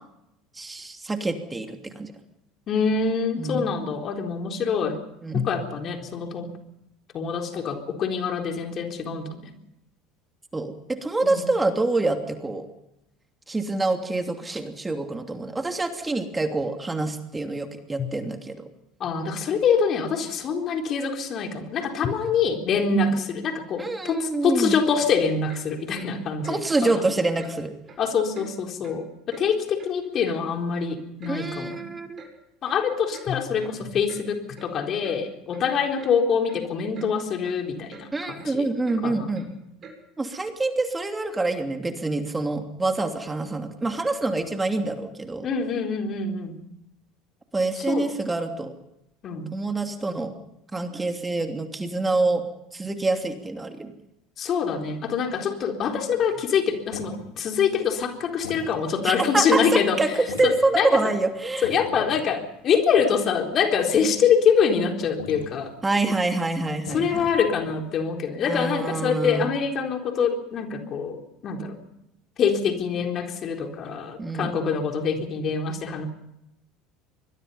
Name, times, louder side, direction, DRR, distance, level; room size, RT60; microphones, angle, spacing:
voice 1, 0.5-2.1 3.4-3.7 5.2-5.5 10.5-12.7 13.5-18.7 22.9-23.1 23.8-24.8 26.5-27.7 31.3-32.2 38.1-39.5 40.2-45.5 47.5-48.7 49.5-50.4 50.7-52.4 52.7-53.9 59.0-61.7 65.8-67.3 68.4-69.4 74.2-74.6, right 2 dB, 15° right, 5 dB, 2.8 m, -26 dB
voice 2, 2.7-5.0 5.3-6.5 7.1-9.5 11.2-11.5 18.0-18.1 19.0-26.6 26.8-27.1 28.0-31.9 32.6-38.7 39.0-39.3 45.4-46.6 47.8-48.1 49.2-49.6 54.4-60.0 60.4-61.0 61.6-65.7 66.9-71.8 72.4-76.1, left 6 dB, 45° left, 3 dB, 3.9 m, -25 dB
Clock, 25.5-25.6 25.9-26.1 26.4-26.6 26.9-27.1 27.4-27.5 27.9-28.0 28.3-28.5 28.8-29.0 29.3-29.4 29.8-30.4 30.7-30.8 31.2-31.4 31.7-31.8 32.2-32.3 32.7-32.8 33.1-33.3 33.6-33.8 34.1-34.2 34.6-34.7 35.0-35.2 35.5-35.6 36.0-36.1 36.5-36.6 36.9-37.1 37.4-37.6 37.9-38.1 38.4-38.5 38.8-39.0 39.3-39.5 39.8-40.0 40.3-40.5, right 5 dB, 40° right, 7.3 m, -45 dB
sound 1, 56.0-59.3 59.6-59.9 60.2-60.8 61.1-62.3 62.6-62.9 63.3-63.4 63.8-64.3 65.0-65.5 66.1-66.3 66.7-67.9, left 5 dB, 85° left, 3.6 m, -39 dB
25.0 x 21.5 x 5.6 m, 0.84 s
hypercardioid pair, 70°, 0 cm